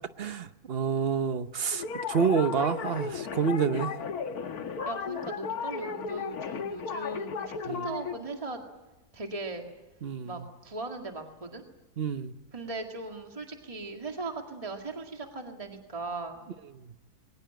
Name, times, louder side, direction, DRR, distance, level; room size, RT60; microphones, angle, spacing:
voice 1, 0.2-3.9 7.7-7.9 10.0-10.4 12.0-12.3, right 6 dB, 45° right, 11 dB, 1.0 m, -28 dB
sound 1, 1.7-8.1, left 6 dB, 80° left, 1.7 m, -35 dB
voice 2, 4.9-8.6 9.1-9.6 10.2-11.6 12.5-16.5, right 3 dB, 20° right, 3 dB, 2.1 m, -38 dB
22.5 x 19.5 x 8.9 m, 1.1 s
omnidirectional pair, 1.6 m